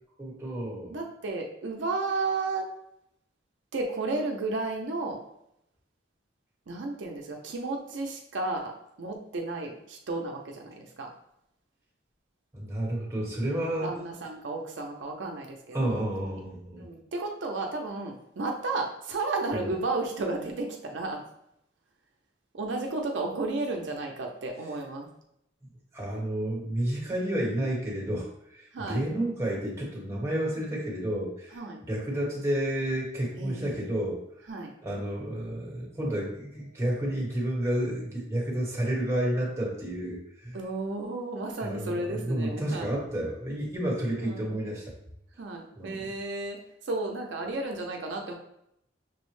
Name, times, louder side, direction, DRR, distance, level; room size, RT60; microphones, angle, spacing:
voice 1, 0.2-1.0 12.5-13.9 15.7-16.9 19.5-19.7 25.9-34.5 34.8-40.6 41.6-44.9 45.7-46.1, right 1 dB, 15° right, -3 dB, 1.0 m, -31 dB
voice 2, 0.9-2.7 3.7-5.2 6.7-11.1 13.8-16.1 16.8-21.2 22.5-25.1 28.7-29.0 31.5-31.8 33.4-33.9 34.5-34.7 40.5-43.0 44.2-44.8 45.4-48.3, right 3 dB, 75° right, 1 dB, 0.5 m, -33 dB
6.0 x 2.1 x 3.1 m, 0.76 s
head